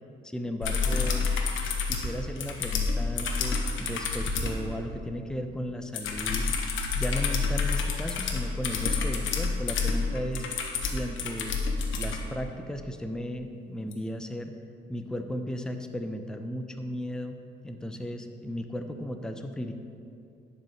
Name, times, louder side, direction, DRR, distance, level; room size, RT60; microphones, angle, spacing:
voice 1, 0.2-1.3 1.8-6.5 6.9-10.5 10.8-11.6 12.0-14.5 14.9-19.7, equal, 5° left, 6 dB, 0.6 m, -35 dB
sound 1, 0.6-4.6 5.9-12.2 13.9-14.0, left 4 dB, 75° left, 1.2 m, -28 dB
10.5 x 5.5 x 6.4 m, 2.6 s
cardioid pair, 90°, 20 cm